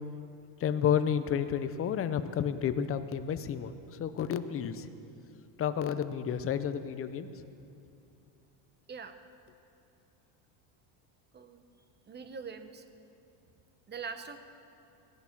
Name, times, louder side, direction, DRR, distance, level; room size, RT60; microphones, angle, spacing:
voice 1, 0.6-3.7 4.0-4.9 5.6-7.3, left 8 dB, 30° left, 11 dB, 0.6 m, -31 dB
voice 2, 12.1-12.8 13.9-14.4, right 5 dB, 20° right, 9 dB, 0.8 m, -42 dB
17.0 x 11.0 x 5.9 m, 2.6 s
cardioid pair, 130°, 49 cm